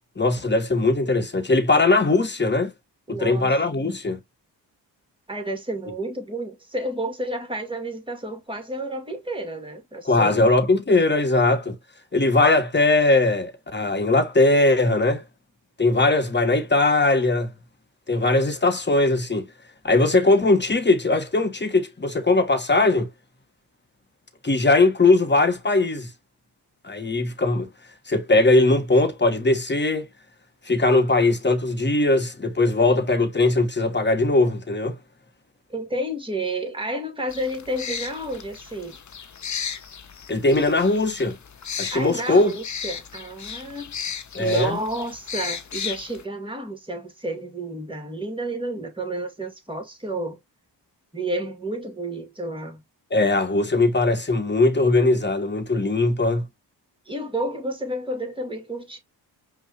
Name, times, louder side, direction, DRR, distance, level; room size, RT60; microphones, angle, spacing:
voice 1, 0.2-2.7 3.1-4.2 10.0-11.7 12.1-15.2 15.8-17.5 18.1-19.5 19.8-23.1 24.4-26.1 26.8-27.7 28.1-30.0 30.7-35.0 40.3-41.4 41.8-42.5 44.3-44.8 53.1-56.4, left 2 dB, 25° left, 1.4 m, -20 dB
voice 2, 3.1-3.5 5.3-10.4 35.7-39.0 41.9-43.9 44.4-50.4 51.1-52.8 57.1-59.0, right 1 dB, 10° right, 2.0 m, -30 dB
sound 1, 37.3-46.2, left 7 dB, 40° left, 0.8 m, -35 dB
5.4 x 2.7 x 2.9 m
cardioid pair, 60°, 44 cm